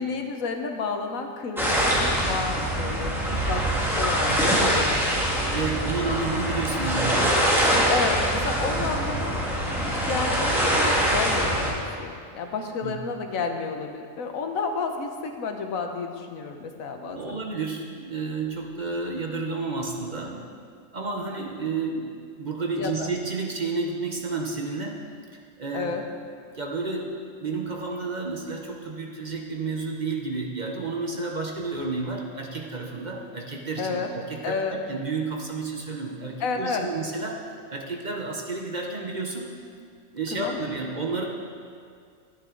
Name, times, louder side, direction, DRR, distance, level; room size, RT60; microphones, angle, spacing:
voice 1, 0.0-5.6 7.9-9.4 9.7-17.4 22.7-23.1 25.7-26.0 33.8-34.1 34.4-34.8 36.4-36.9 40.3-40.6, left 4 dB, 90° left, 5 dB, 1.3 m, -31 dB
sound 1, 1.6-11.7, equal, ahead, 1.8 m, -24 dB
voice 2, 4.3-4.6 5.5-7.5 12.8-13.0 17.0-20.4 20.7-25.0 25.3-26.0 26.5-39.5 40.1-41.2, right 3 dB, 40° right, 1 dB, 0.9 m, -31 dB
12.0 x 10.0 x 3.8 m, 2.2 s
omnidirectional pair, 1.4 m